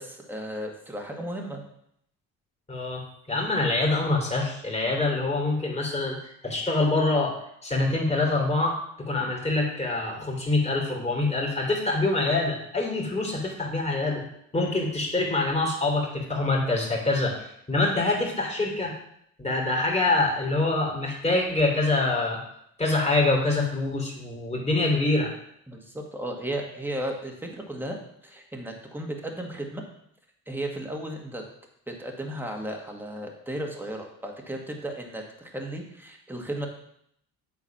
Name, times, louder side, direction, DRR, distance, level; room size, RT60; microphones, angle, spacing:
voice 1, 0.0-1.6 25.7-29.8 30.5-31.4 31.9-36.7, right 1 dB, 5° right, 1 dB, 1.8 m, -35 dB
voice 2, 2.7-6.2 6.4-14.2 14.5-18.9 19.4-22.4 22.8-25.3, left 2 dB, 15° left, -1 dB, 2.9 m, -25 dB
8.4 x 4.0 x 5.9 m, 0.72 s
hypercardioid pair, 65°, 42 cm